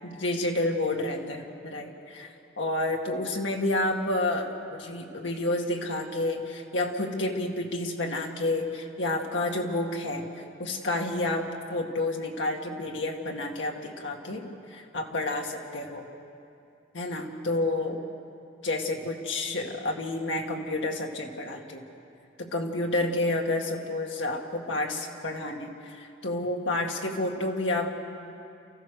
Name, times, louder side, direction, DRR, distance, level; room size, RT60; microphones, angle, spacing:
voice 1, 0.0-10.2 10.6-16.1 16.9-18.0 18.6-21.9 22.4-27.9, left 2 dB, 90° left, 1 dB, 2.1 m, -30 dB
28.5 x 15.0 x 6.6 m, 2.6 s
head